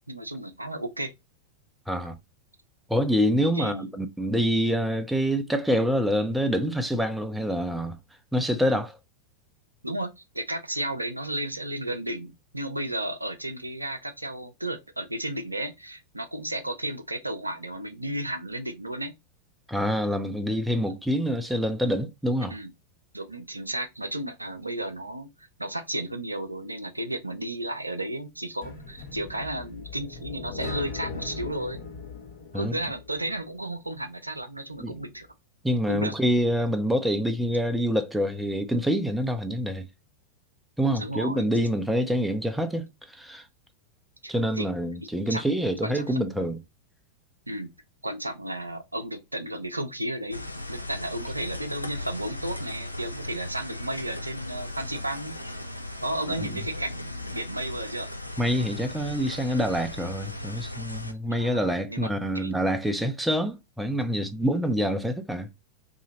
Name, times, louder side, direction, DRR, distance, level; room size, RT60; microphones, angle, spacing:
voice 1, 0.1-1.1 3.5-3.9 9.8-19.1 22.5-22.7 23.1-31.8 32.5-35.3 35.9-36.1 40.9-41.4 44.2-44.7 45.3-45.4 45.8-46.5 47.5-47.7 48.0-55.4 56.0-58.1 61.3-62.7, right 1 dB, 85° right, 0.5 m, -33 dB
voice 2, 1.9-2.2 2.9-8.0 8.3-9.0 19.7-22.5 32.5-32.8 34.8-34.9 35.6-39.9 40.8-43.5 44.3-46.6 56.3-56.6 58.4-65.5, equal, 5° right, 0.5 m, -26 dB
sound 1, 28.6-33.5, left 4 dB, 60° left, 1.0 m, -40 dB
sound 2, 50.3-61.1, left 1 dB, 85° left, 0.4 m, -37 dB
2.8 x 2.6 x 3.9 m
figure-of-eight pair, 90°, 0 cm